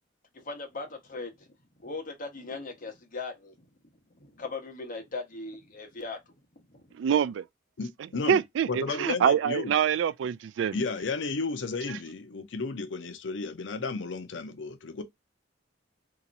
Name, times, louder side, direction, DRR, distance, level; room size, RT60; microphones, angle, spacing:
voice 1, 0.3-1.5 1.8-3.6 4.1-6.2 6.5-6.9, left 3 dB, 50° left, 1.1 m, -39 dB
voice 2, 7.0-7.4 8.3-10.8 11.9-12.0, right 8 dB, 85° right, 0.3 m, -25 dB
voice 3, 7.8-8.4 8.7-9.7 10.7-15.0, left 4 dB, 85° left, 0.6 m, -33 dB
2.9 x 2.5 x 4.0 m
head